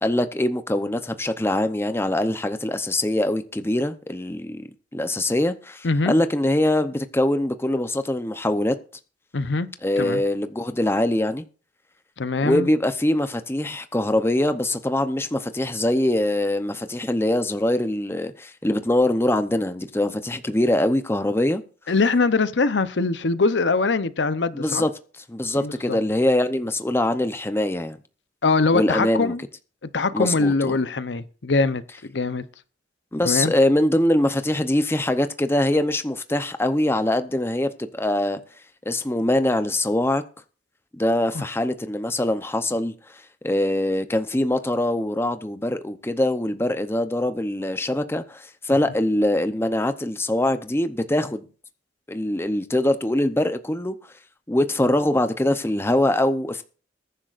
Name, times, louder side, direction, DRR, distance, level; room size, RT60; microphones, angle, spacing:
voice 1, 0.0-8.7 9.8-11.4 12.4-21.6 24.5-24.9 25.3-28.0 28.7-29.3 30.1-30.8 33.1-38.4 38.9-40.2 40.9-42.9 43.4-51.5 52.1-54.0 54.5-56.6, left 1 dB, 15° left, 0.7 m, -23 dB
voice 2, 9.3-9.7 10.0-10.2 12.2-12.7 21.9-24.8 25.5-26.0 28.4-29.4 29.9-32.4 33.2-33.5 41.3-41.4, left 3 dB, 75° left, 0.7 m, -22 dB
21.0 x 10.0 x 2.5 m
head